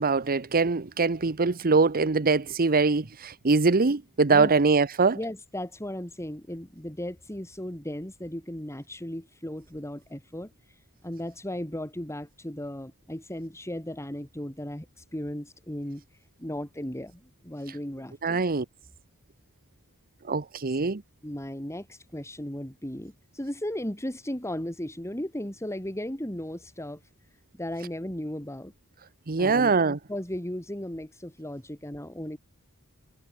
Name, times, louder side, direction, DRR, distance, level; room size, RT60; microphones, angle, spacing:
voice 1, 0.0-5.2 18.2-18.6 20.3-21.0 29.3-30.0, right 4 dB, 40° right, 0.9 m, -23 dB
voice 2, 5.1-10.5 11.0-16.0 16.4-18.4 21.2-27.0 27.6-28.7 29.4-32.4, left 1 dB, 15° left, 4.7 m, -36 dB
head